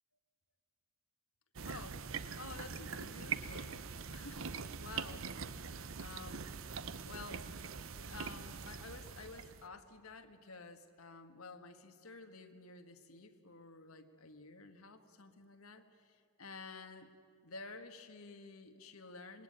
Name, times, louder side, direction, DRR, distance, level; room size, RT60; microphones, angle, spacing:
voice 1, 1.6-2.0 2.4-3.8 4.1-5.3 6.0-6.6 7.1-17.1 17.4-19.4, left 3 dB, 80° left, 6 dB, 1.8 m, -52 dB
sound 1, 1.6-9.7, right 6 dB, 70° right, 0.9 m, -43 dB
26.0 x 21.0 x 9.0 m, 2.3 s
head